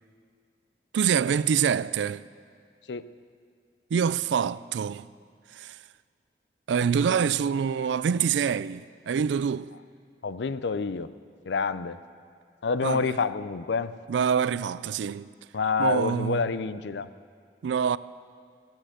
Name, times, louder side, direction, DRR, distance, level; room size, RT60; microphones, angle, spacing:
voice 1, 0.9-2.2 3.9-5.1 5.5-5.8 6.7-9.7 12.8-13.2 14.1-15.3 15.8-16.5 17.6-18.0, right 7 dB, 90° right, 0.4 m, -25 dB
voice 2, 10.2-11.1 11.5-12.0 12.6-14.0 15.5-17.1, left 5 dB, 80° left, 0.5 m, -28 dB
15.5 x 10.0 x 7.9 m
head